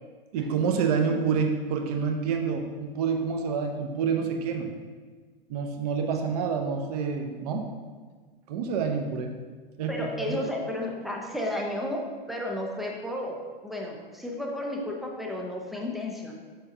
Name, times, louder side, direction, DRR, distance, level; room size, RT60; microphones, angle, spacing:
voice 1, 0.3-4.7 5.5-7.7 8.5-9.3 9.8-10.4, right 6 dB, 40° right, 4 dB, 0.8 m, -28 dB
voice 2, 9.9-16.3, left 1 dB, ahead, -1 dB, 0.4 m, -33 dB
6.7 x 5.5 x 2.7 m, 1.5 s
figure-of-eight pair, 100°, 30 cm